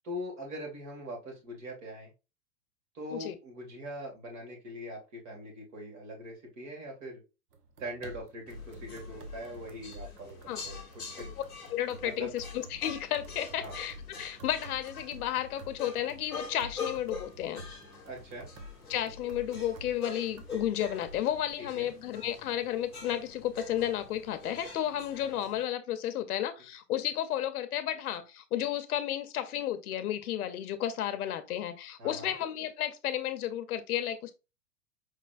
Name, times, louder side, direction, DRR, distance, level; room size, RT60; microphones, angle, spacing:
voice 1, 0.0-2.1 2.9-7.2 7.8-10.4 10.6-10.8 11.2-11.3 12.0-12.3 13.6-13.8 18.1-18.5 21.6-21.9 32.0-32.3, equal, 50° right, 2.0 m, -42 dB
sound 1, 7.5-21.5, equal, 75° right, 1.1 m, -49 dB
sound 2, 8.5-25.6, left 4 dB, ahead, 0.3 m, -45 dB
voice 2, 11.7-17.6 18.9-34.3, left 11 dB, 65° left, 0.7 m, -33 dB
5.1 x 3.2 x 2.4 m
hypercardioid pair, 145°, 47 cm